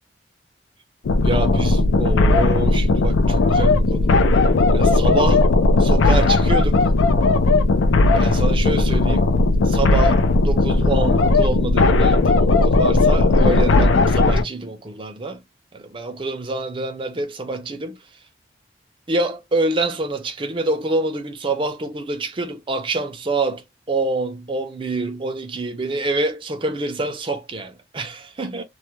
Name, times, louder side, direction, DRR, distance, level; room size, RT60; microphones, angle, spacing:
sound 1, 1.1-14.4, left 2 dB, 85° left, 0.4 m, -16 dB
voice 1, 1.2-4.3 4.7-5.4 5.8-6.9 8.1-9.3 9.6-15.4 15.7-18.0 19.1-28.6, right 2 dB, 25° right, 0.4 m, -26 dB
2.2 x 2.1 x 2.9 m
head